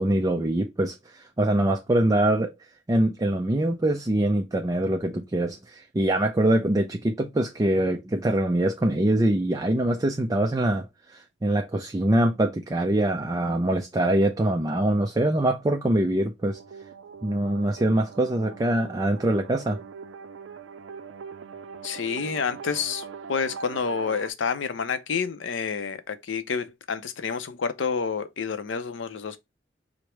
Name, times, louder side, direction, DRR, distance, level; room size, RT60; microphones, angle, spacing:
voice 1, 0.0-2.5 2.9-16.6 17.2-19.8, right 1 dB, 20° right, 0.4 m, -24 dB
sound 1, 16.4-24.3, right 6 dB, 90° right, 0.4 m, -42 dB
voice 2, 21.8-29.4, left 5 dB, 75° left, 0.6 m, -29 dB
4.9 x 2.1 x 4.3 m
head